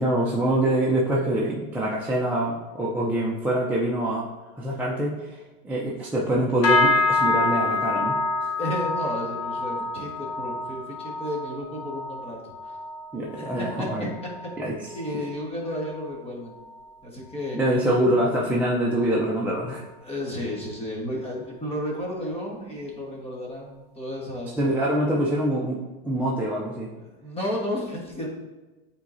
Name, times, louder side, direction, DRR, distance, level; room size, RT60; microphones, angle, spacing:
voice 1, 0.0-4.3 4.6-5.4 5.6-8.5 13.1-14.1 14.6-14.7 17.5-19.9 24.6-26.9, right 1 dB, 5° right, -6 dB, 0.7 m, -25 dB
sound 1, 6.6-16.2 16.5-16.9 17.3-17.6 18.2-18.3, left 3 dB, 70° left, 1.5 m, -27 dB
voice 2, 8.6-12.4 12.7-12.8 13.4-14.1 14.9-16.6 17.0-17.6 20.0-24.9 27.0-28.3, left 1 dB, 20° left, -2 dB, 1.5 m, -33 dB
9.2 x 3.8 x 2.7 m, 1.2 s
supercardioid pair, 130°, 31 cm